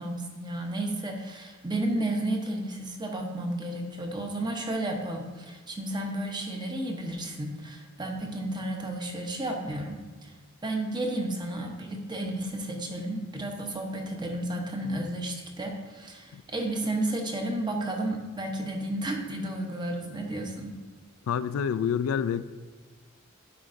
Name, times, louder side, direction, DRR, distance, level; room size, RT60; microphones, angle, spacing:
voice 1, 0.0-10.3 10.6-20.7, right 1 dB, 20° right, 2 dB, 0.8 m, -32 dB
voice 2, 21.3-22.4, left 7 dB, 90° left, 15 dB, 0.3 m, -27 dB
10.0 x 4.7 x 2.6 m, 1.3 s
head